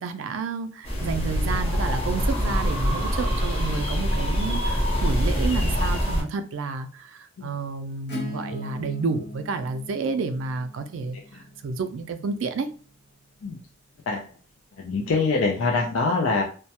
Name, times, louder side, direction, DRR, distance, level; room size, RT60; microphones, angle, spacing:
voice 1, 0.0-11.2 11.6-12.7, right 4 dB, 75° right, 0.3 m, -30 dB
sound 1, 0.8-6.2, equal, 30° left, 0.7 m, -24 dB
Acoustic guitar / Strum, 8.1-13.6, left 1 dB, 60° left, 0.8 m, -40 dB
voice 2, 14.8-16.4, left 4 dB, 80° left, 0.4 m, -24 dB
2.2 x 2.1 x 2.8 m
head